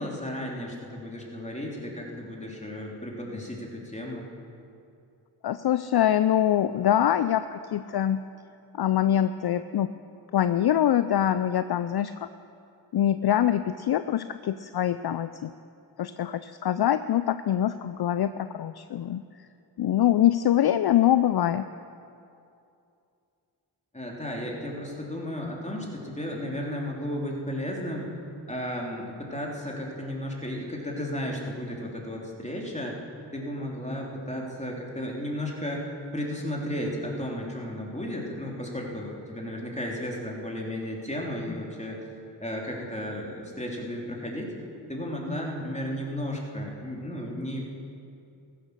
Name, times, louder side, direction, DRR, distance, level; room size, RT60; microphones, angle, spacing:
voice 1, 0.0-4.2 23.9-28.1 28.5-33.0 33.3-42.0 42.4-44.5 44.9-47.7, left 1 dB, 15° left, -2 dB, 3.2 m, -34 dB
voice 2, 5.4-8.2 8.8-9.9 10.3-12.3 12.9-15.5 16.0-19.2 19.8-21.7, left 11 dB, 55° left, 13 dB, 0.5 m, -24 dB
14.5 x 11.5 x 6.6 m, 2.6 s
cardioid pair, 40°, 46 cm